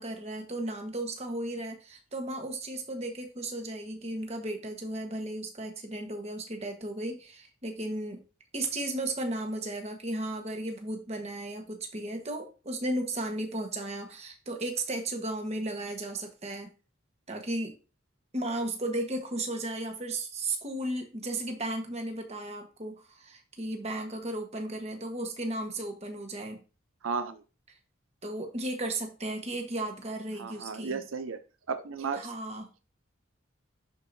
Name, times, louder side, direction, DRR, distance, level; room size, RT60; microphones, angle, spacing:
voice 1, 0.0-8.2 8.5-16.7 17.3-17.8 18.3-26.6 28.2-31.0 32.1-32.7, right 1 dB, 30° right, 4 dB, 1.3 m, -35 dB
voice 2, 27.0-27.4 30.4-31.4 31.7-32.3, right 5 dB, 85° right, 10 dB, 0.6 m, -34 dB
11.0 x 4.6 x 2.7 m, 0.34 s
head